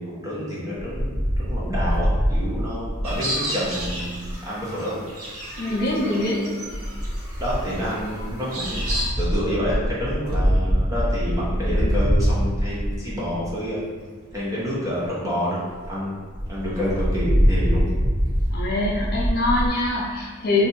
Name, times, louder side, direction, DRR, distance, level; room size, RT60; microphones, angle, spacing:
voice 1, 0.0-5.0 7.4-8.9 9.2-13.8 14.3-15.6 15.9-16.1 16.5-17.8, equal, 15° right, -8 dB, 0.7 m, -28 dB
Wind, 0.8-4.4 5.5-6.0 6.7-13.7 14.3-14.4 14.6-14.7 15.0-15.1 15.4-15.5 15.7-15.9 16.3-19.7, equal, 35° right, 1.4 m, -24 dB
sound 1, 3.0-9.1, equal, 75° right, 0.8 m, -33 dB
voice 2, 5.6-6.5 18.5-20.7, left 2 dB, 45° left, -4 dB, 0.5 m, -23 dB
2.7 x 2.5 x 4.2 m, 1.5 s
head